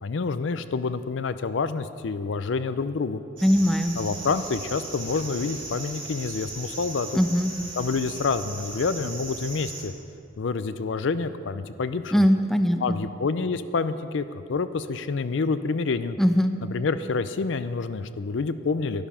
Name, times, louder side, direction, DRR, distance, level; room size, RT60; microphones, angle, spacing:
voice 1, 0.0-3.2 4.0-7.2 7.8-9.9 10.4-12.2 12.8-16.2 16.6-19.1, left 4 dB, 75° left, 12 dB, 0.5 m, -28 dB
voice 2, 3.4-3.9 7.1-7.6 12.1-13.0 16.2-16.5, equal, ahead, 7 dB, 0.5 m, -21 dB
sound 1, 3.4-9.8, right 3 dB, 70° right, 3.9 m, -38 dB
12.0 x 11.0 x 5.6 m, 2.4 s
head